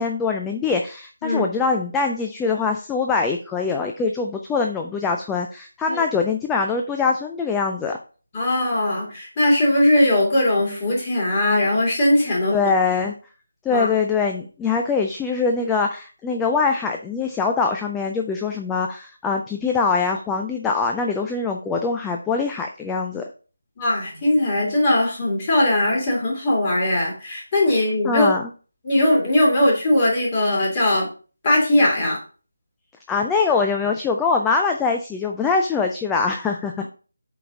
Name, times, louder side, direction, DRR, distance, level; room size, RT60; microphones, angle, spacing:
voice 1, 0.0-8.0 12.5-13.1 13.6-23.2 28.0-28.5 33.1-36.8, left 4 dB, 5° left, 3 dB, 0.4 m, -23 dB
voice 2, 8.3-12.6 13.7-13.9 23.8-28.3 28.8-31.1 31.4-32.2, left 1 dB, 20° left, -3 dB, 3.0 m, -19 dB
7.7 x 4.9 x 3.7 m, 0.37 s
figure-of-eight pair, 160°, 0 cm